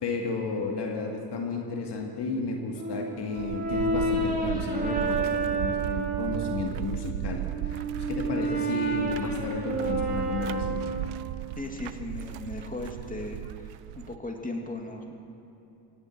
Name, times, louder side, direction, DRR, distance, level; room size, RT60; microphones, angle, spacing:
voice 1, 0.0-10.8, left 3 dB, 55° left, 1 dB, 2.2 m, -33 dB
Brass instrument, 2.8-6.7 7.3-11.4, right 3 dB, 20° right, 3.9 m, -30 dB
sound 1, 3.4-14.2, right 15 dB, 80° right, 0.6 m, -36 dB
voice 2, 11.6-15.1, left 2 dB, 15° left, 2 dB, 2.5 m, -37 dB
17.0 x 17.0 x 4.6 m, 2.8 s
supercardioid pair, 75°, 48 cm